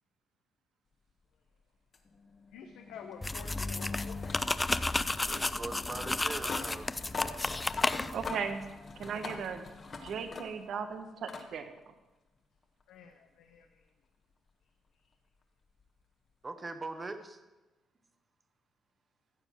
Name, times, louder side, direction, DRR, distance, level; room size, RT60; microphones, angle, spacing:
sound 1, 1.9-10.8 11.3-11.5 12.8-12.9 15.8-15.9, left 4 dB, 45° left, 1.4 m, -43 dB
voice 1, 2.5-4.3 12.9-13.9, left 7 dB, 90° left, 4 dB, 1.0 m, -50 dB
sound 2, 3.2-8.3, left 2 dB, 15° left, 0.5 m, -32 dB
voice 2, 5.2-6.9 16.4-17.4, right 3 dB, 25° right, 8 dB, 1.3 m, -41 dB
voice 3, 8.1-8.6 9.0-9.6 10.0-11.7, right 6 dB, 65° right, 8 dB, 1.2 m, -37 dB
15.0 x 7.2 x 6.2 m, 1.1 s
cardioid pair, 90°, 0 cm